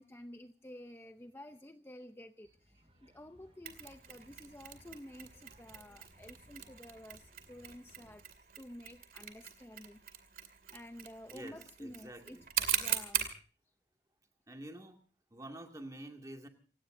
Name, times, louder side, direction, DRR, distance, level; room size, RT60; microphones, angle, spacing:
voice 1, 0.0-2.8 3.0-8.2 8.6-10.2 10.7-13.3, left 1 dB, 15° left, 7 dB, 0.7 m, -51 dB
sound 1, 2.4-8.2, equal, 35° right, 5.5 m, -63 dB
Mechanisms, 3.7-13.4, right 10 dB, 55° right, 2.5 m, -41 dB
voice 2, 11.3-12.5 14.5-15.0 15.3-16.5, right 1 dB, 20° right, 3 dB, 2.3 m, -48 dB
29.0 x 16.5 x 2.7 m, 0.39 s
head